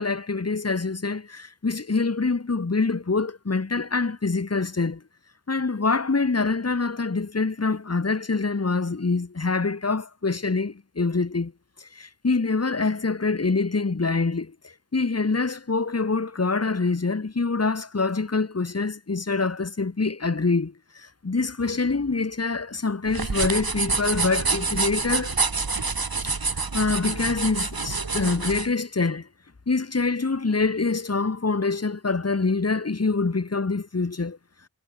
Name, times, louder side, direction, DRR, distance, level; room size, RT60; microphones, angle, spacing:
voice 1, 0.0-5.0 5.5-11.5 11.8-25.3 26.2-26.3 26.7-29.3 29.7-34.4, left 4 dB, 40° left, 1.7 m, -25 dB
sound 1, 23.1-28.7, right 4 dB, 70° right, 4.4 m, -27 dB
wide cardioid pair, 55°, 37 cm